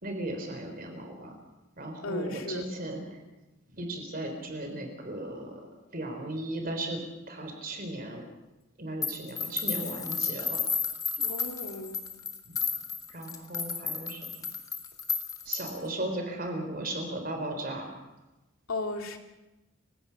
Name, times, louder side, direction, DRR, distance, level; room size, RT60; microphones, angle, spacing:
voice 1, 0.0-1.4 1.8-3.2 3.7-8.2 8.8-10.6 12.5-12.6 13.1-14.3 15.4-17.9, right 1 dB, 45° right, 4 dB, 3.8 m, -36 dB
voice 2, 2.0-2.7 11.2-12.1 18.7-19.2, left 2 dB, 85° left, 4 dB, 2.6 m, -35 dB
sound 1, 9.0-15.9, left 5 dB, 15° left, 1.6 m, -32 dB
29.5 x 16.5 x 5.9 m, 1.1 s
head